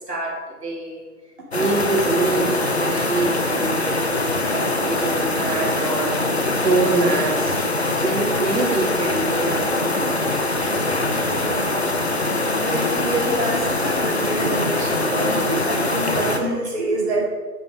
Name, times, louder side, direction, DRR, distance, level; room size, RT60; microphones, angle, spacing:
voice 1, 0.1-1.1 1.5-7.6 8.0-10.2, right 2 dB, 70° right, -2 dB, 3.3 m, -25 dB
sound 1, 1.5-16.4, left 2 dB, 40° left, 1.0 m, -23 dB
voice 2, 11.1-11.7 12.5-17.2, right 2 dB, 40° right, -6 dB, 2.2 m, -26 dB
9.4 x 6.1 x 5.4 m, 1.3 s
figure-of-eight pair, 175°, 49 cm